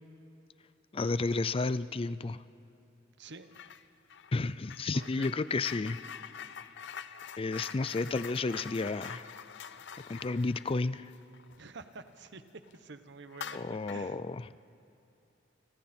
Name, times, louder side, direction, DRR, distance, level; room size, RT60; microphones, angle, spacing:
voice 1, 0.9-2.4 4.3-6.0 7.4-9.3 10.1-11.1 13.5-14.4, left 3 dB, 30° left, 0.4 m, -32 dB
voice 2, 3.2-3.6 4.9-5.3 9.8-9.9 11.6-12.4 12.7-14.2, right 3 dB, 65° right, 1.1 m, -49 dB
sound 1, 3.5-3.8 4.1-12.3 12.6-12.8 13.3-14.1, left 7 dB, 65° left, 0.7 m, -45 dB
29.5 x 26.0 x 4.4 m
head